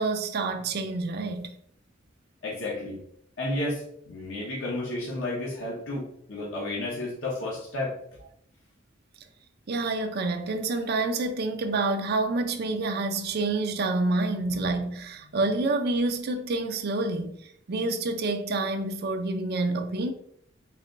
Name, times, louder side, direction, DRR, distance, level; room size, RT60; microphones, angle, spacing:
voice 1, 0.0-1.5 9.7-20.1, right 2 dB, 55° right, 0.5 m, -28 dB
voice 2, 2.4-3.0 3.4-8.0, left 2 dB, 75° left, 0.9 m, -32 dB
4.1 x 2.2 x 3.8 m
head